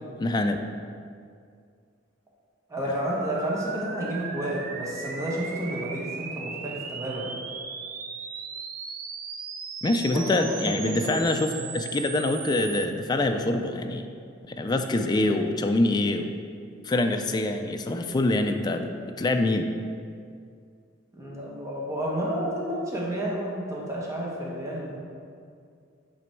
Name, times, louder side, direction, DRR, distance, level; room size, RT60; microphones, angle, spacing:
voice 1, 0.2-0.6 9.8-14.1 14.5-16.3 16.8-19.7, left 2 dB, 20° left, 5 dB, 0.3 m, -25 dB
voice 2, 2.7-7.3 10.1-11.4 21.1-25.0, right 1 dB, 15° right, -4 dB, 1.1 m, -31 dB
sound 1, 2.9-12.8, right 5 dB, 50° right, 0.5 m, -37 dB
8.9 x 3.0 x 4.5 m, 2.3 s
head